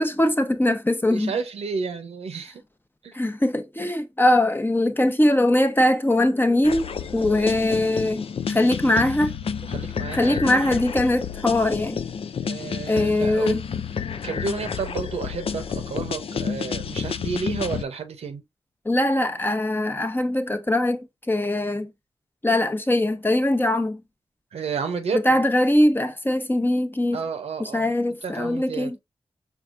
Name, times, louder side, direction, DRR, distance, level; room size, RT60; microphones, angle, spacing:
voice 1, 0.0-1.3 3.1-9.3 10.1-12.0 12.9-13.6 18.8-21.9 22.4-24.0 25.1-27.2 27.6-29.0, left 1 dB, 20° left, 0.8 m, -21 dB
voice 2, 1.1-2.6 3.0-3.2 9.6-10.6 12.4-13.6 14.2-18.4 24.5-25.2 27.1-27.9 28.2-29.0, right 5 dB, 80° right, 0.7 m, -31 dB
sound 1, 6.6-17.8, left 6 dB, 65° left, 0.4 m, -30 dB
4.6 x 3.5 x 2.5 m
cardioid pair, 50°, 10 cm